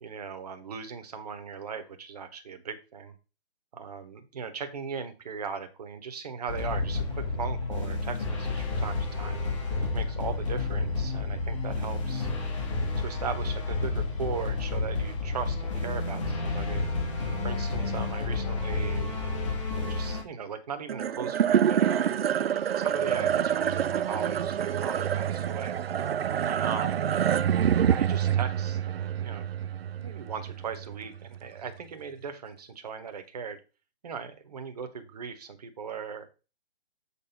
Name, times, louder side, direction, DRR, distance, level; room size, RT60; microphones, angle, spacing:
voice 1, 0.0-3.1 3.7-9.4 9.9-12.3 13.0-16.9 17.4-19.2 19.9-22.2 22.8-25.8 26.4-27.1 27.8-29.4 30.0-33.6 34.0-36.3, right 6 dB, 35° right, 7 dB, 1.1 m, -38 dB
sound 1, 6.5-20.2, left 3 dB, 30° left, 1.4 m, -30 dB
sound 2, 20.9-31.4, right 9 dB, 65° right, 0.5 m, -27 dB
7.0 x 3.4 x 5.7 m, 0.31 s
hypercardioid pair, 165°, 33 cm